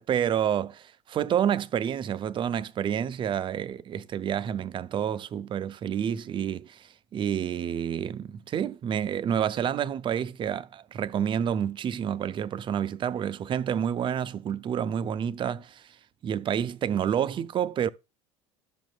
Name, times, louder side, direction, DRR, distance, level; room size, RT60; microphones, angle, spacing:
voice 1, 0.0-15.9 16.2-17.9, right 9 dB, 30° right, 0.6 m, -29 dB
12.0 x 7.3 x 2.4 m
figure-of-eight pair, 65°, 16 cm